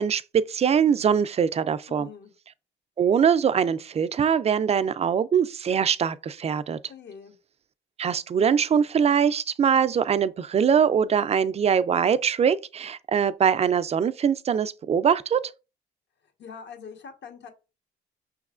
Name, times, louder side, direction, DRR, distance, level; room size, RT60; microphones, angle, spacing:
voice 1, 0.0-2.1 3.0-6.8 8.0-15.4, right 7 dB, 30° right, 0.3 m, -22 dB
voice 2, 1.9-2.3 6.9-7.3 16.2-17.5, left 6 dB, 60° left, 1.2 m, -43 dB
5.7 x 3.1 x 2.4 m
cardioid pair, 90°, 20 cm